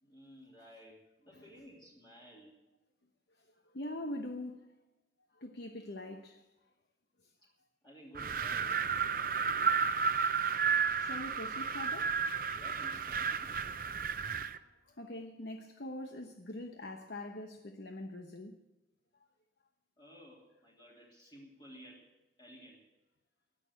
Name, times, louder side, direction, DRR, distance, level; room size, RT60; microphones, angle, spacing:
voice 1, 0.0-2.6 7.8-9.6 12.5-13.5 20.0-22.1 22.4-22.8, equal, 25° left, 2.8 m, -55 dB
voice 2, 3.4-4.7 5.3-6.5 7.2-7.3 10.7-12.3 14.5-18.6, left 1 dB, 65° left, 1.0 m, -44 dB
Wind, 8.2-14.6, right 6 dB, 50° right, 0.6 m, -32 dB
19.5 x 6.7 x 9.4 m
head